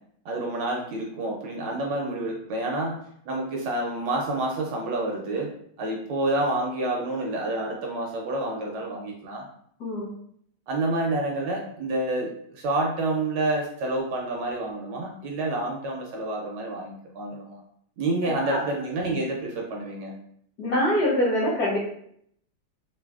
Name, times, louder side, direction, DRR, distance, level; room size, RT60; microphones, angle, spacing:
voice 1, 0.2-3.0 3.3-5.5 5.8-9.4 10.7-17.6 18.0-20.1, right 2 dB, 75° right, 0 dB, 1.1 m, -28 dB
voice 2, 9.8-10.1 18.2-18.6 20.6-21.8, left 1 dB, 60° left, -6 dB, 1.2 m, -24 dB
3.1 x 2.6 x 2.3 m, 0.68 s
omnidirectional pair, 2.2 m